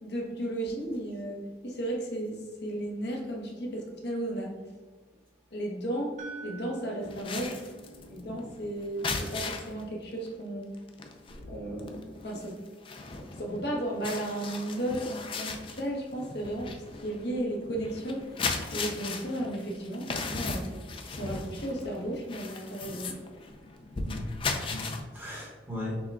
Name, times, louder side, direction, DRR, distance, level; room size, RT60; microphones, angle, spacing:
voice 1, 0.0-4.5 5.5-6.2 6.4-7.6 8.1-10.7 11.5-12.0 12.2-12.6 13.4-20.6 21.1-23.2, right 1 dB, 60° left, -1 dB, 1.0 m, -34 dB
sound 1, 6.2-10.2, right 5 dB, 40° right, 0.4 m, -48 dB
sound 2, 7.0-9.8 10.3-10.4 10.7-25.0, left 4 dB, 30° left, 0.4 m, -37 dB
voice 2, 7.9-8.4 11.3-12.1 24.0-24.3 24.7-26.0, left 1 dB, 10° right, -5 dB, 1.0 m, -40 dB
6.1 x 2.2 x 3.5 m, 1.4 s
head